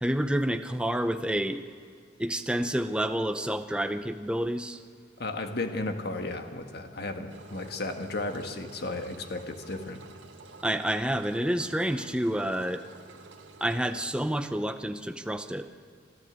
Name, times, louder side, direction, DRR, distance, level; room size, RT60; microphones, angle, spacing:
voice 1, 0.0-1.6 2.2-4.8 10.6-12.9 13.6-15.7, right 1 dB, 5° right, 8 dB, 0.6 m, -29 dB
voice 2, 5.2-10.0, left 2 dB, 60° left, 6 dB, 1.7 m, -34 dB
Engine, 7.3-14.1, right 3 dB, 80° right, 1.8 m, -50 dB
26.0 x 14.0 x 8.2 m, 2.1 s
head